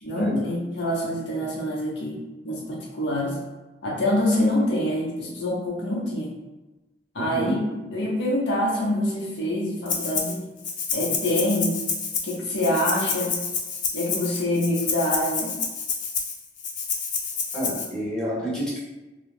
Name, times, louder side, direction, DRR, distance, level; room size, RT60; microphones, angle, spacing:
voice 1, 0.0-3.4 3.8-6.4 7.1-10.5 10.9-11.8 12.2-13.4 13.9-15.6, left 1 dB, 90° left, -4 dB, 0.7 m, -26 dB
voice 2, 7.2-7.5 17.5-18.9, equal, 5° left, -8 dB, 0.7 m, -29 dB
Rattle (instrument), 9.9-10.4 10.6-17.9, left 5 dB, 45° left, 0.4 m, -28 dB
2.3 x 2.0 x 3.1 m, 1.1 s
head